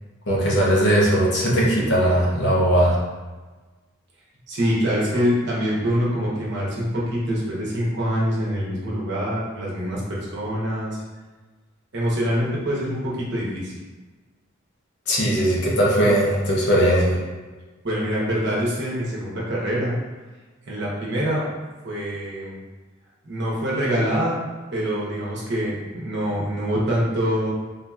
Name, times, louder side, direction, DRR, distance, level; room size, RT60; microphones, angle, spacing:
voice 1, 0.3-3.0 15.1-17.2, equal, 55° left, -5 dB, 0.9 m, -19 dB
voice 2, 4.5-11.0 11.9-13.7 17.8-20.0 20.6-21.5 21.8-22.6 23.2-24.4 24.7-27.5, equal, 55° right, -5 dB, 0.9 m, -25 dB
3.8 x 2.8 x 2.3 m, 1.3 s
head